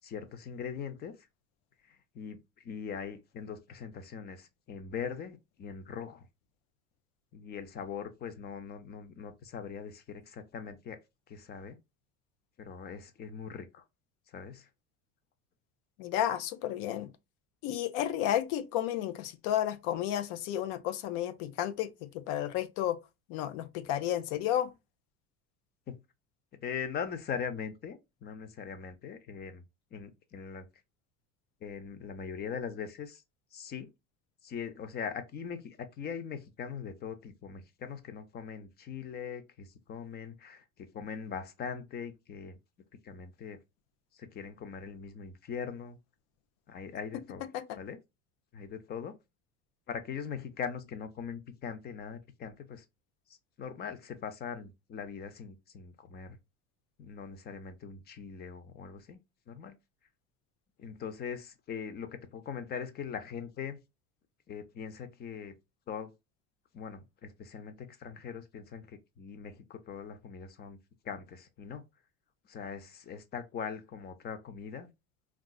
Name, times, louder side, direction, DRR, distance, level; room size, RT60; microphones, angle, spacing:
voice 1, 0.0-1.1 2.1-2.4 2.6-6.2 7.3-11.0 11.3-11.8 12.6-13.8 14.3-14.7 25.9-26.0 26.6-29.6 29.9-30.7 31.6-33.2 33.5-33.9 34.4-42.6 43.0-43.6 44.1-46.0 46.7-47.4 47.8-48.0 48.5-49.2 49.9-52.8 53.6-56.4 57.0-59.2 59.5-59.7 60.8-63.8 64.5-65.5 65.9-66.1 66.7-70.8 71.0-71.8 72.5-74.9, left 7 dB, 30° left, 0.5 m, -41 dB
voice 2, 16.0-17.1 17.6-23.0 23.3-24.7 47.5-47.8, left 11 dB, 80° left, 0.6 m, -32 dB
3.7 x 2.3 x 2.2 m
cardioid pair, 140°, 32 cm